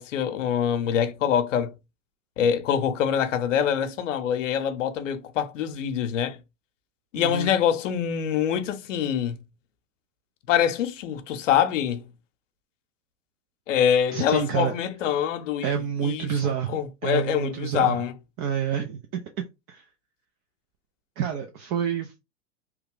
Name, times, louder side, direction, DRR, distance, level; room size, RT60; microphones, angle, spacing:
voice 1, 0.0-1.7 2.4-6.4 7.1-9.4 10.5-12.0 13.7-18.1, left 9 dB, 80° left, 0.7 m, -25 dB
voice 2, 7.1-7.5 14.1-14.7 15.6-16.8 17.0-18.0 18.4-19.8 21.2-22.2, right 8 dB, 45° right, 0.6 m, -28 dB
3.0 x 2.3 x 3.7 m
hypercardioid pair, 105°, 37 cm